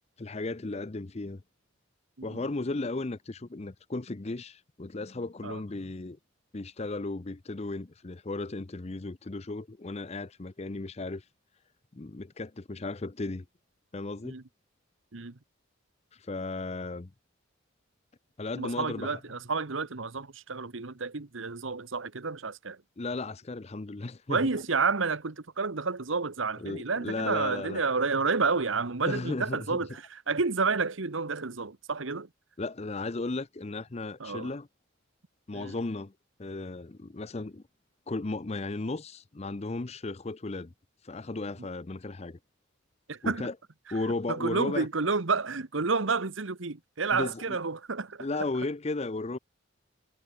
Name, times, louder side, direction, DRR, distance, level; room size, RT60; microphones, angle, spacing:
voice 1, 0.2-1.4 2.2-6.2 6.5-11.2 11.9-13.5 13.9-14.4 16.2-17.1 18.4-19.2 23.0-24.4 26.6-27.8 29.0-29.8 32.6-34.7 35.5-36.1 36.4-37.6 38.1-40.7 41.0-42.4 43.2-43.5 43.9-44.9 47.1-47.6 48.2-49.4, left 2 dB, 30° left, 0.6 m, -35 dB
voice 2, 2.2-2.5 5.4-5.6 14.2-14.4 15.1-15.4 18.6-22.8 24.3-32.3 34.2-34.5 35.5-35.8 41.6-41.7 43.1-43.5 44.3-48.5, right 4 dB, 70° right, 1.2 m, -30 dB
head